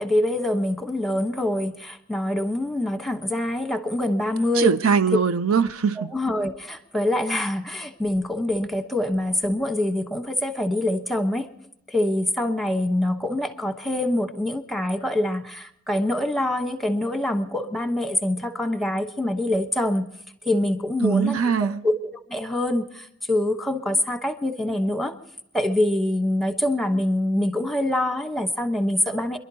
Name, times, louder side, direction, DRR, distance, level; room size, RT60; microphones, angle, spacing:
voice 1, 0.0-4.8 6.0-11.5 11.9-20.1 20.4-25.1 25.5-29.4, left 1 dB, ahead, 1.1 m, -25 dB
voice 2, 4.6-6.1 21.0-21.8, right 6 dB, 90° right, 0.7 m, -21 dB
27.0 x 11.5 x 2.8 m
head